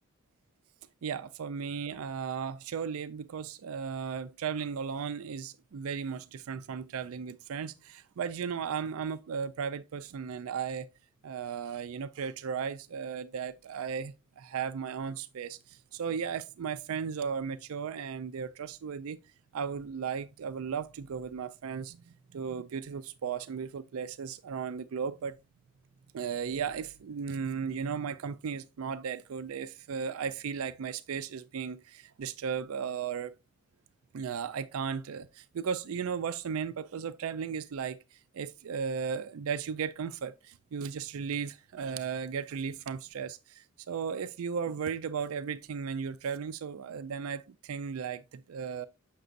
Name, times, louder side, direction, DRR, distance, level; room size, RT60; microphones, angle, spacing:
voice 1, 1.0-10.9 11.2-19.2 19.5-22.0 22.3-25.4 26.1-33.3 34.1-48.9, right 6 dB, 70° right, 0.4 m, -36 dB
7.8 x 6.0 x 2.5 m
head